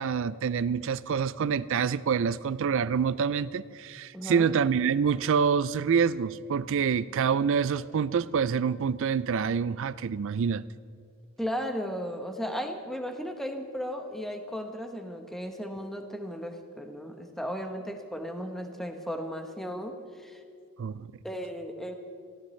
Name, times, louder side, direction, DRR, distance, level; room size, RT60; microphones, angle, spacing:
voice 1, 0.0-10.6 20.8-21.1, right 6 dB, 60° right, 17 dB, 0.4 m, -26 dB
voice 2, 4.1-4.5 11.4-20.4 21.2-21.9, equal, ahead, 4 dB, 1.0 m, -35 dB
23.0 x 15.5 x 3.2 m, 2.2 s
head